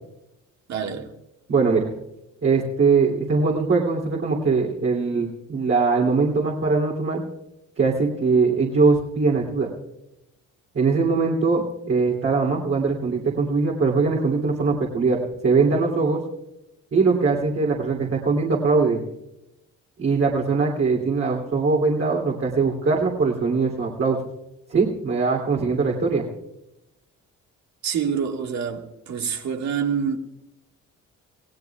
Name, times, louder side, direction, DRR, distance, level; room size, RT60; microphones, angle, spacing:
voice 1, 0.7-1.1 27.8-30.2, right 7 dB, 65° right, 1.8 m, -26 dB
voice 2, 1.5-1.9 2.4-7.2 7.8-9.7 10.7-16.2 16.9-19.0 20.0-24.2 24.7-26.2, right 4 dB, 45° right, 2.9 m, -21 dB
28.0 x 16.5 x 2.4 m
cardioid pair, 90°, 30 cm